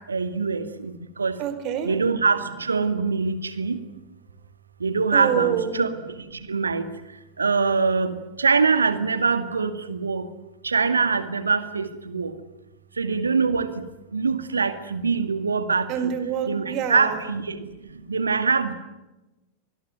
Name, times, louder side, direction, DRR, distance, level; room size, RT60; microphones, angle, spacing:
voice 1, 0.1-0.9 1.2-1.3 1.9-3.8 4.8-5.9 6.5-6.8 7.4-8.1 8.4-10.2 10.6-12.3 13.0-13.7 14.1-15.9 16.5-17.6 18.1-18.7, right 4 dB, 75° right, 11 dB, 2.1 m, -23 dB
voice 2, 1.4-2.0 5.1-5.8 15.9-17.2, right 9 dB, 40° right, 9 dB, 4.4 m, -26 dB
26.0 x 20.5 x 9.4 m, 1.0 s
figure-of-eight pair, 90°, 0 cm